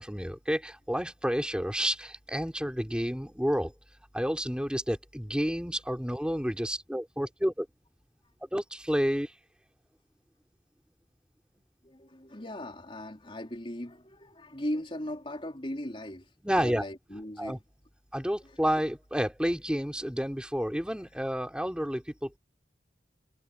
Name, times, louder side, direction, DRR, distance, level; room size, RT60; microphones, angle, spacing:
voice 1, 0.0-3.7 4.1-7.7 8.5-9.3 16.4-16.8 17.4-17.6 18.1-22.4, equal, 5° right, 3.5 m, -30 dB
voice 2, 11.8-16.3 16.6-17.6, left 1 dB, 30° left, 3.8 m, -38 dB
head